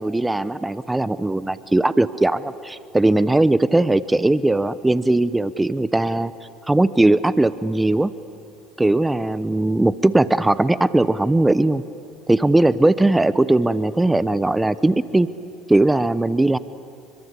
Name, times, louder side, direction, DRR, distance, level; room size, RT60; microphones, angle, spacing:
voice 1, 0.0-6.3 6.7-8.1 8.8-11.8 12.3-15.3 15.7-16.6, right 2 dB, 10° right, 16 dB, 0.8 m, -19 dB
28.5 x 25.0 x 8.3 m, 2.9 s
supercardioid pair, 90°, 0 cm